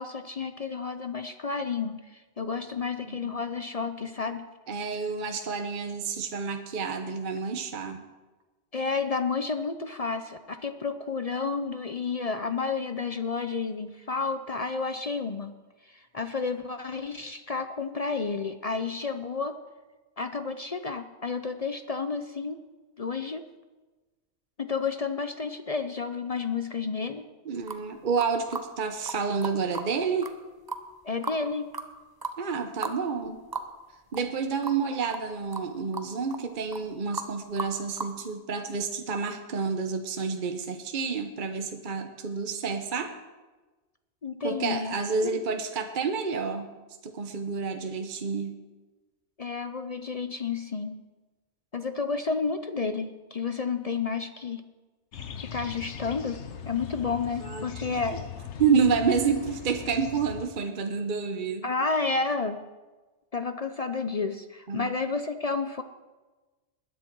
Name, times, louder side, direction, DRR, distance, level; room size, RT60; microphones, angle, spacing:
voice 1, 0.0-4.4 8.7-15.5 15.9-19.6 20.2-22.6 23.0-23.5 24.6-27.2 31.0-31.7 44.2-44.9 45.2-45.4 49.4-51.0 51.7-54.6 55.4-58.2 61.6-62.6 63.3-65.8, left 4 dB, 40° left, 9 dB, 0.6 m, -31 dB
voice 2, 3.0-3.3 4.7-8.0 27.4-30.3 32.4-33.5 34.1-43.1 44.4-46.7 47.0-48.6 57.4-57.7 58.1-58.2 58.6-61.7 64.7-65.0, right 5 dB, 45° right, 6 dB, 1.0 m, -29 dB
sound 1, 27.7-27.8 28.2-28.7 29.1-29.2 29.4-29.9 30.2-30.3 30.7-31.4 31.7-31.9 32.2-32.4 32.8-33.0 33.2-33.3 33.5-33.7 34.1-34.4 34.6-34.8 35.1-35.3 35.5-35.7 35.9-36.4 36.7-36.9 37.1-37.3 37.6-38.1, right 3 dB, 20° right, 0.8 m, -35 dB
sound 2, 55.1-60.5, left 7 dB, 75° left, 1.2 m, -40 dB
20.0 x 10.0 x 4.6 m, 1.2 s
omnidirectional pair, 1.2 m